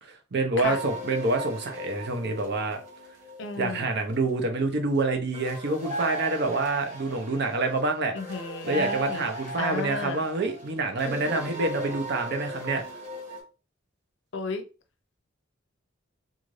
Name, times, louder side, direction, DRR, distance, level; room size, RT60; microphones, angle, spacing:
voice 1, 0.0-2.8 3.6-8.1 8.6-12.8, right 3 dB, 60° right, 0.7 m, -27 dB
sound 1, 0.6-4.1 5.3-13.4, right 1 dB, 40° right, 1.6 m, -37 dB
voice 2, 3.4-3.9 8.1-9.2 9.6-10.2 14.3-14.6, left 4 dB, 65° left, 0.5 m, -33 dB
2.5 x 2.5 x 3.1 m
head